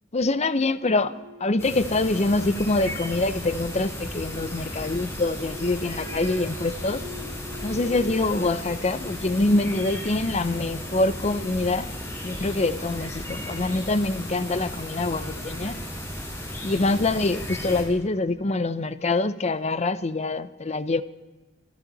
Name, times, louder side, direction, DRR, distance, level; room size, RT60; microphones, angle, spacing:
voice 1, 0.1-1.1 1.4-7.0 7.6-11.9 12.2-15.8 16.6-21.0, left 2 dB, 35° left, 13 dB, 0.7 m, -25 dB
sound 1, 0.8-17.4, left 2 dB, 80° right, 4.4 m, -47 dB
sound 2, 1.6-17.8, left 1 dB, 15° left, 5.5 m, -35 dB
24.5 x 13.5 x 4.1 m, 1.2 s
head